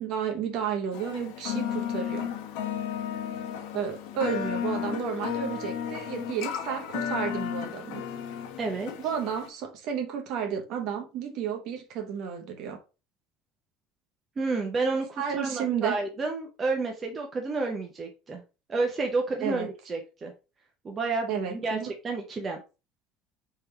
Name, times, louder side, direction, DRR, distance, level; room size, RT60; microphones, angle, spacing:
voice 1, 0.0-2.3 3.7-8.0 9.0-12.8 15.2-16.0 19.4-19.7 21.3-21.9, right 8 dB, 45° right, 0.9 m, -32 dB
sound 1, 0.9-9.5, left 9 dB, 70° left, 0.9 m, -34 dB
voice 2, 8.6-8.9 14.4-18.4 18.7-20.3 20.8-21.8 22.0-22.6, right 3 dB, 20° right, 0.6 m, -30 dB
3.6 x 3.3 x 4.4 m
cardioid pair, 180°, 0 cm